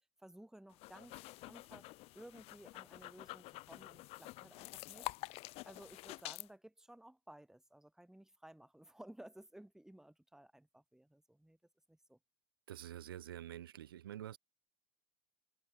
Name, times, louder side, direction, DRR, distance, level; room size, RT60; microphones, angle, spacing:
voice 1, 0.2-1.9 2.1-5.1 5.6-11.6 11.9-12.2, right 1 dB, 5° right, 5.6 m, -57 dB
sound 1, 0.7-6.5, left 20 dB, 60° left, 2.9 m, -48 dB
voice 2, 12.7-14.4, right 11 dB, 90° right, 4.5 m, -47 dB
hypercardioid pair, 90°, 12 cm